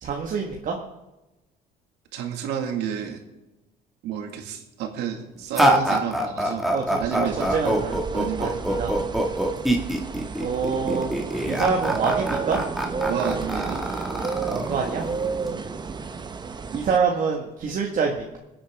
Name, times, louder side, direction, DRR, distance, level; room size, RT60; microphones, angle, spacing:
voice 1, 0.0-0.8 6.7-8.0 8.4-8.9 10.4-11.1 11.5-12.6 14.5-15.1 16.7-18.4, right 5 dB, 50° right, 0 dB, 1.7 m, -26 dB
voice 2, 2.1-3.2 4.0-6.7 7.0-7.5 8.1-8.6 13.1-13.8 15.5-15.7, right 8 dB, 90° right, 4 dB, 2.1 m, -30 dB
sound 1, 5.5-15.5, right 1 dB, ahead, 2.0 m, -25 dB
sound 2, 7.2-17.0, right 5 dB, 25° right, 0.9 m, -31 dB
23.0 x 8.7 x 3.6 m, 1.0 s
cardioid pair, 110°, 17 cm